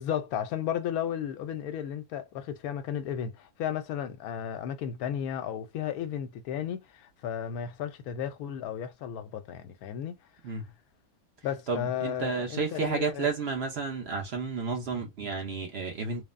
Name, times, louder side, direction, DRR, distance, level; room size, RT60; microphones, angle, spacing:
voice 1, 0.0-10.2 10.4-10.5 11.4-13.3, left 9 dB, 85° left, 1.1 m, -34 dB
voice 2, 11.7-16.2, right 4 dB, 55° right, 0.9 m, -31 dB
3.2 x 2.0 x 2.4 m
omnidirectional pair, 1.5 m